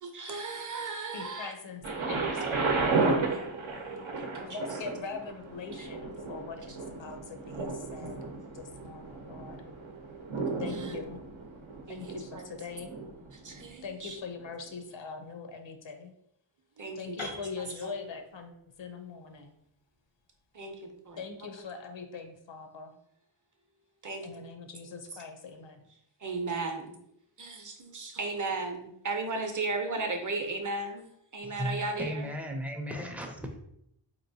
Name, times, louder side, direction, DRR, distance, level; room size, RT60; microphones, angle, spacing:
voice 1, 0.0-1.5 4.2-4.5 5.8-5.9 10.7-10.9 11.9-12.5 13.4-14.2 16.8-17.3 20.5-21.2 24.0-24.3 26.2-26.9 27.4-31.1 31.3-32.3, right 3 dB, 40° right, 5 dB, 0.6 m, -35 dB
voice 2, 1.1-3.0 4.4-8.2 8.5-9.6 10.6-11.2 11.9-12.9 13.8-16.1 16.9-19.6 21.2-23.0 24.2-25.8, left 5 dB, 70° left, 5 dB, 0.6 m, -42 dB
Thunder, 1.8-13.7 14.4-14.5, right 3 dB, 80° right, 0.7 m, -33 dB
Piano, 17.2-21.1, left 2 dB, 90° left, 1.0 m, -46 dB
voice 3, 31.4-33.6, equal, 5° right, 3 dB, 0.4 m, -36 dB
4.1 x 2.9 x 2.6 m, 0.75 s
wide cardioid pair, 125°, 47 cm